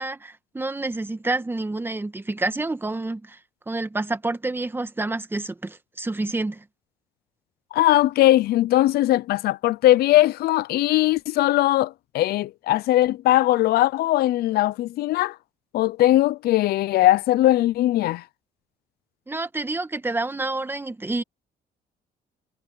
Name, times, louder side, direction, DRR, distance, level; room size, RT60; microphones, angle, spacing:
voice 1, 0.0-3.4 3.7-6.6 19.3-21.2, right 2 dB, 15° right, 1.6 m, -28 dB
voice 2, 7.7-15.4 15.7-18.2, left 15 dB, 70° left, 0.6 m, -20 dB
cardioid pair, 110°, 17 cm